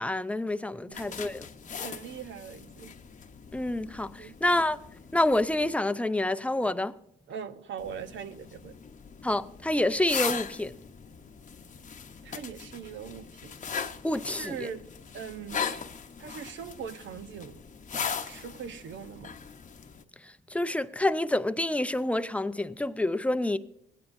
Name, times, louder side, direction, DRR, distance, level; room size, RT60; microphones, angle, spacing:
voice 1, 0.0-1.5 3.5-4.8 5.1-6.9 9.2-10.7 14.0-14.6 20.2-23.6, left 1 dB, 5° left, 0.5 m, -28 dB
sound 1, 0.9-5.7 7.8-20.0, left 6 dB, 40° left, 0.8 m, -39 dB
voice 2, 0.9-1.2 1.8-2.9 4.2-4.3 7.3-8.8 12.2-13.6 14.1-14.9 15.1-15.7 16.2-17.6 18.3-19.4, right 7 dB, 70° right, 0.8 m, -41 dB
18.0 x 9.3 x 2.6 m
cardioid pair, 90°, 20 cm